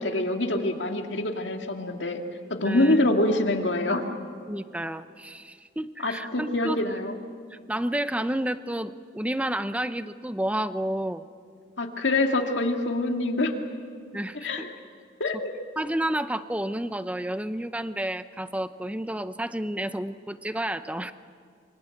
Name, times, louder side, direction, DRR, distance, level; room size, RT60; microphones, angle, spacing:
voice 1, 0.0-2.2 2.5-4.1 6.0-7.2 11.8-13.5 14.4-14.7 15.2-15.5, left 2 dB, 75° left, 3 dB, 2.3 m, -25 dB
voice 2, 2.6-3.1 4.5-7.0 7.5-11.2 14.1-14.7 15.8-21.1, right 1 dB, 5° right, 11 dB, 0.7 m, -30 dB
27.0 x 24.5 x 7.9 m, 2.1 s
head